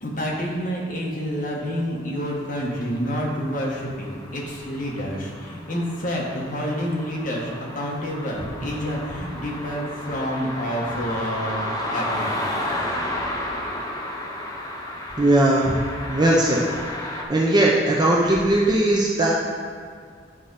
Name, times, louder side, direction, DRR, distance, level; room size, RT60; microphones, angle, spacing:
voice 1, 0.0-12.5, equal, 45° left, -3 dB, 1.5 m, -28 dB
sound 1, 2.6-17.2, left 1 dB, 20° left, 0.8 m, -33 dB
voice 2, 15.2-15.8 16.1-16.6 17.3-19.3, right 1 dB, 25° right, -4 dB, 0.7 m, -19 dB
10.5 x 5.0 x 4.1 m, 2.1 s
head